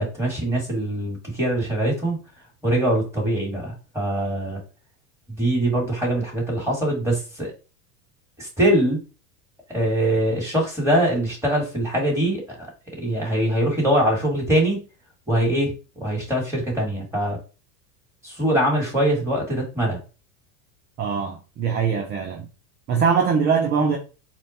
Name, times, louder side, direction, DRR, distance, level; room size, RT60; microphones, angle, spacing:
voice 1, 0.0-2.2 2.6-4.6 5.3-7.5 8.4-9.0 9.7-12.7 13.0-14.8 15.3-15.7 16.0-17.4 18.2-20.0, right 1 dB, 5° right, 1.8 m, -23 dB
voice 2, 21.0-22.5 22.9-24.0, right 6 dB, 25° right, 0.5 m, -22 dB
4.3 x 2.2 x 4.1 m
supercardioid pair, 125°, 47 cm